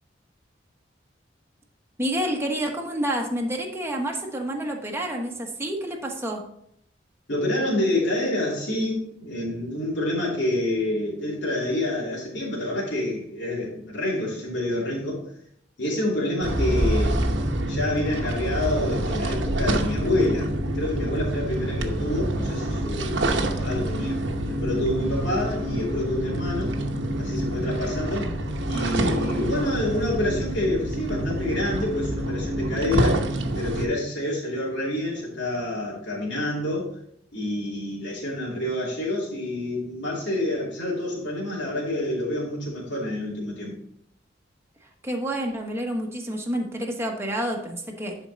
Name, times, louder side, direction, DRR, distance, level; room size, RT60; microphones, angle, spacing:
voice 1, 2.0-6.4 45.0-48.2, right 1 dB, 15° right, 1 dB, 1.1 m, -29 dB
voice 2, 7.3-15.2 15.8-17.2 17.7-20.5 20.7-24.2 24.5-26.8 27.2-28.3 28.7-33.2 33.5-36.9 37.3-43.8, left 1 dB, 70° left, -6 dB, 2.7 m, -27 dB
sound 1, 16.4-33.8, right 1 dB, 75° right, 1.0 m, -27 dB
10.5 x 4.5 x 4.0 m, 0.71 s
head